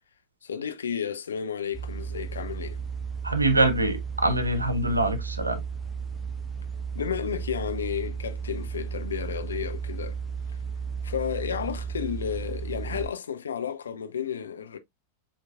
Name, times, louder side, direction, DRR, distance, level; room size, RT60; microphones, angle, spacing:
voice 1, 0.4-2.8 6.9-10.2 11.0-14.8, left 8 dB, 70° left, 0.7 m, -32 dB
sound 1, 1.7-13.1, right 6 dB, 5° right, 1.0 m, -34 dB
voice 2, 3.2-5.6 12.9-13.0, right 2 dB, 80° right, 0.9 m, -24 dB
7.2 x 3.0 x 2.4 m
figure-of-eight pair, 90°, 0 cm